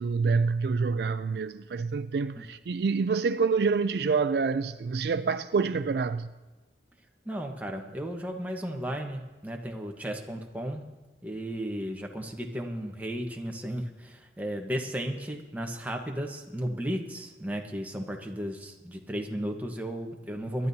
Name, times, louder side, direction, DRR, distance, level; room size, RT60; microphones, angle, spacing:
voice 1, 0.0-6.3, right 4 dB, 65° right, 0.4 m, -27 dB
voice 2, 7.2-10.8 11.2-20.7, equal, 10° right, 1.2 m, -34 dB
24.0 x 12.0 x 2.8 m
head